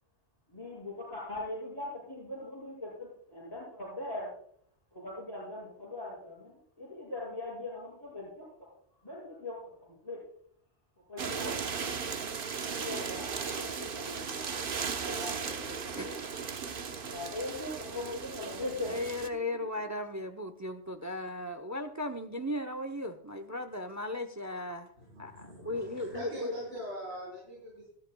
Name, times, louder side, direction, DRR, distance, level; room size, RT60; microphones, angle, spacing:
voice 1, 0.5-4.3 4.9-8.7 9.0-10.2 11.1-11.7 12.7-16.1 17.1-19.0 19.4-19.5, left 2 dB, 25° left, -8 dB, 5.6 m, -41 dB
sound 1, 11.2-19.3, right 6 dB, 55° right, 1.0 m, -37 dB
voice 2, 18.9-24.9 25.2-26.5, left 1 dB, 20° right, 8 dB, 0.6 m, -36 dB
voice 3, 25.0-27.9, right 1 dB, 75° right, -6 dB, 4.7 m, -42 dB
18.5 x 14.0 x 2.2 m, 0.64 s
omnidirectional pair, 1.1 m